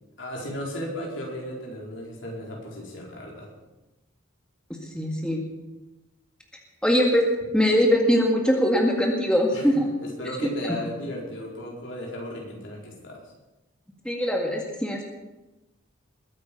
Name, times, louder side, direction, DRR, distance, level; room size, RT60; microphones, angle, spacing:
voice 1, 0.2-3.5 9.5-13.2, left 1 dB, 60° left, -2 dB, 4.4 m, -35 dB
voice 2, 4.7-5.4 6.8-7.3 7.5-9.9 10.7-10.8 14.0-15.0, equal, 5° left, 0 dB, 2.0 m, -22 dB
21.0 x 9.2 x 5.4 m, 1.0 s
head